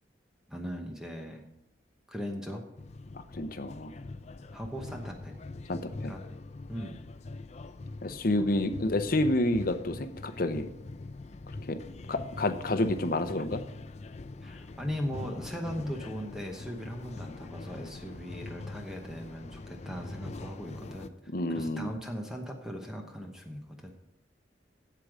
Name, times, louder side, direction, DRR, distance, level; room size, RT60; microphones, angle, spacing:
voice 1, 0.5-1.5 2.1-2.7 4.5-5.4 6.1-6.2 6.7-7.0 8.4-8.5 14.4-21.1 21.5-23.9, equal, 5° right, 2 dB, 1.0 m, -38 dB
sound 1, 2.8-21.1, left 2 dB, 40° left, 0.5 m, -43 dB
voice 2, 3.1-3.9 5.7-6.1 8.0-10.7 11.6-11.8 12.1-13.6 21.3-21.9, left 1 dB, 55° left, 9 dB, 0.8 m, -29 dB
8.3 x 7.8 x 6.3 m, 0.82 s
head